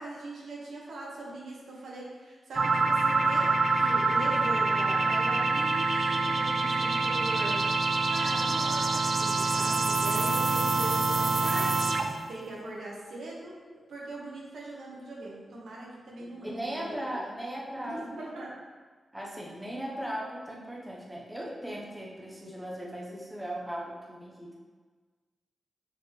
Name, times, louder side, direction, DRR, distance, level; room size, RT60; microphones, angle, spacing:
voice 1, 0.0-13.6 13.9-17.2 17.8-18.5, right 2 dB, 85° right, -4 dB, 1.6 m, -40 dB
sound 1, 2.5-12.3, right 3 dB, 50° right, 0.5 m, -26 dB
voice 2, 16.2-18.2 19.1-24.6, right 1 dB, 10° right, -3 dB, 1.0 m, -38 dB
7.1 x 4.3 x 3.3 m, 1.4 s
wide cardioid pair, 120°, 0 cm